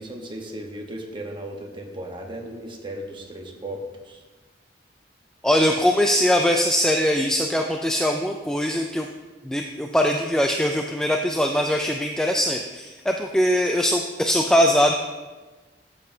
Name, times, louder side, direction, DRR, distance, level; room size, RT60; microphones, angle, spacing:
voice 1, 0.0-3.8 4.0-4.2, right 1 dB, 25° right, 1 dB, 1.1 m, -36 dB
voice 2, 5.4-9.1 9.4-14.9, equal, 5° left, 3 dB, 0.3 m, -21 dB
11.5 x 7.6 x 2.8 m, 1.3 s
head